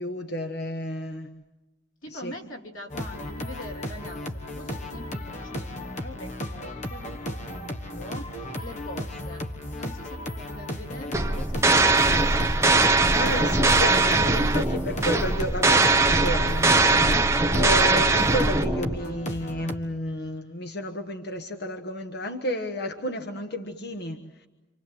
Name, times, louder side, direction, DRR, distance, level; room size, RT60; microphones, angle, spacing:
voice 1, 0.0-1.3 2.1-2.4 13.2-24.5, left 1 dB, 55° left, 5 dB, 1.3 m, -32 dB
voice 2, 2.0-9.4 9.7-12.4 13.2-13.5, left 1 dB, 90° left, 2 dB, 3.3 m, -43 dB
sound 1, 2.9-19.8, left 1 dB, 35° left, 1.5 m, -35 dB
sound 2, 11.1-19.0, right 3 dB, 15° right, 0.9 m, -21 dB
28.0 x 26.5 x 7.8 m, 1.0 s
head